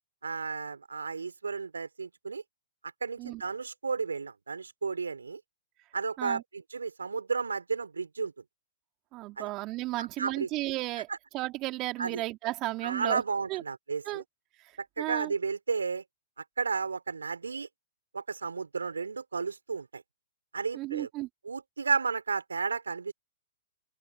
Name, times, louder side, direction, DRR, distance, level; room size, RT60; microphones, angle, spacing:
voice 1, 0.2-2.4 3.0-5.4 5.9-8.3 9.4-9.5 10.0-10.5 11.1-11.2 12.0-12.2 12.8-14.2 14.8-16.0 16.6-17.7 18.1-20.0 20.5-21.1 21.4-23.1, right 5 dB, 85° right, 4.6 m, -33 dB
voice 2, 9.1-13.2 13.5-13.6 14.0-14.2 14.6-14.7 15.0-15.3 20.7-21.3, right 19 dB, 35° right, 3.5 m, -34 dB
open air
hypercardioid pair, 115°, 0 cm